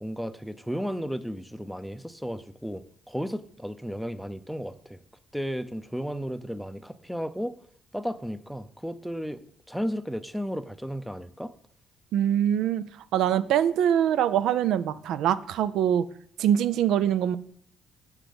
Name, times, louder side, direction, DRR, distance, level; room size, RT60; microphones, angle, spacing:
voice 1, 0.0-5.0 5.3-7.6 7.9-9.4 9.7-11.5, equal, ahead, 12 dB, 0.5 m, -34 dB
voice 2, 12.1-12.8 13.1-16.1 16.4-17.4, right 10 dB, 85° right, 16 dB, 0.4 m, -23 dB
7.4 x 6.0 x 5.1 m, 0.64 s
cardioid pair, 90°, 0 cm